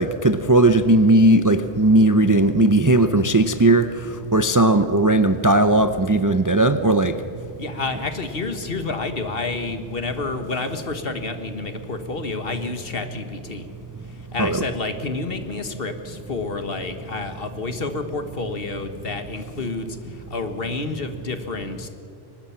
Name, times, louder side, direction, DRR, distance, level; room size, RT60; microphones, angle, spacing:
voice 1, 0.0-3.9 4.3-7.1 14.4-14.6, right 2 dB, 25° right, 10 dB, 0.5 m, -17 dB
voice 2, 7.6-13.7 14.0-21.9, left 3 dB, 55° left, 8 dB, 1.7 m, -29 dB
23.0 x 20.0 x 5.8 m, 2.6 s
omnidirectional pair, 1.2 m